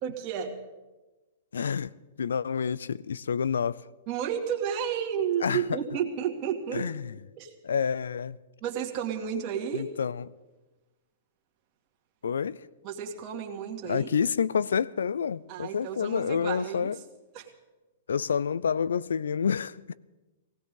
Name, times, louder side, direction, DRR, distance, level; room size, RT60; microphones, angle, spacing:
voice 1, 0.0-0.6 4.1-6.8 7.4-7.5 8.6-9.9 12.8-14.1 15.5-16.9 17.3-17.5, right 8 dB, 40° right, 2.2 m, -32 dB
voice 2, 1.5-3.9 5.4-5.8 6.7-7.2 7.6-8.4 9.7-10.3 12.2-12.7 13.8-17.0 18.1-19.9, left 7 dB, 80° left, 0.4 m, -28 dB
19.5 x 16.5 x 3.8 m
hypercardioid pair, 115°, 0 cm